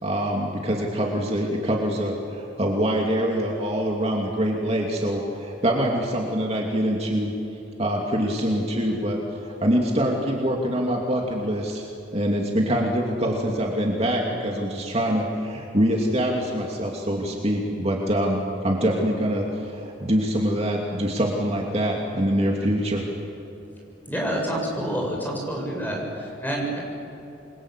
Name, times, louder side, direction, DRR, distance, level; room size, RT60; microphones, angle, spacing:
voice 1, 0.0-7.3 7.8-11.9 12.1-23.1, equal, 35° right, -1 dB, 2.7 m, -24 dB
voice 2, 24.1-26.8, right 1 dB, 10° left, -1 dB, 7.3 m, -28 dB
28.5 x 23.0 x 8.4 m, 2.9 s
head